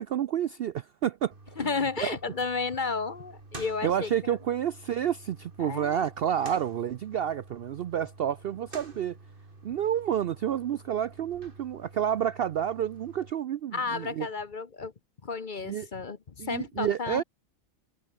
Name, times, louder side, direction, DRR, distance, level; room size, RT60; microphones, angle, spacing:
voice 1, 0.0-1.3 1.6-1.7 2.0-2.2 3.8-9.2 9.6-14.3 15.7-15.9 16.4-17.2, right 10 dB, 65° right, 0.6 m, -29 dB
sound 1, 1.3-13.3, right 2 dB, 40° right, 3.1 m, -49 dB
voice 2, 1.6-4.4 5.6-6.1 13.7-14.9 15.2-17.2, left 4 dB, 40° left, 1.0 m, -32 dB
omnidirectional pair, 1.4 m